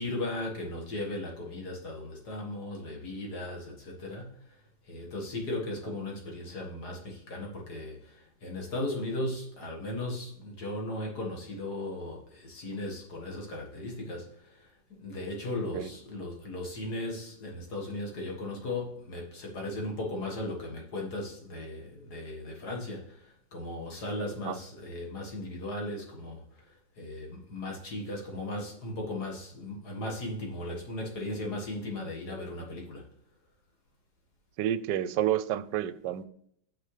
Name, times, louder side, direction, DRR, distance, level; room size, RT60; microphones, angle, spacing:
voice 1, 0.0-4.6 4.9-33.0, left 1 dB, 60° left, 2.2 m, -37 dB
voice 2, 34.6-36.2, right 11 dB, 80° right, 1.2 m, -29 dB
8.8 x 6.7 x 3.3 m
omnidirectional pair, 1.9 m